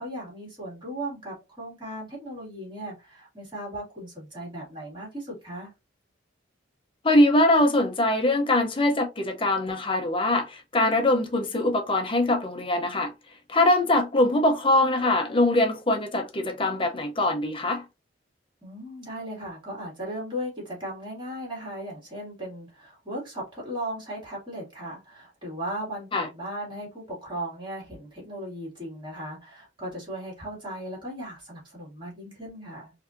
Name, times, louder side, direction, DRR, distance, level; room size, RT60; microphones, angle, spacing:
voice 1, 0.0-5.7 18.6-32.9, right 1 dB, 25° right, 2.3 m, -37 dB
voice 2, 7.0-13.1 13.5-17.8 26.1-26.3, left 1 dB, 30° left, 0.7 m, -22 dB
4.6 x 2.7 x 2.6 m
head